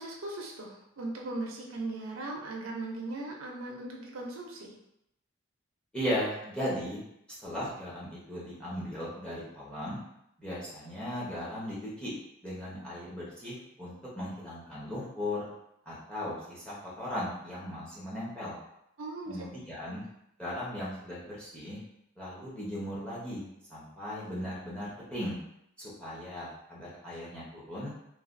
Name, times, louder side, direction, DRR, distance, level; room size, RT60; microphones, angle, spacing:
voice 1, 0.0-4.7 19.0-19.4, right 2 dB, 75° right, -1 dB, 0.5 m, -38 dB
voice 2, 5.9-7.0 7.4-10.0 10.4-12.1 12.4-15.5 15.9-18.6 19.3-20.0 20.4-21.8 22.2-25.4 25.8-27.9, left 1 dB, 5° left, -7 dB, 0.8 m, -37 dB
3.1 x 2.3 x 2.5 m, 0.79 s
head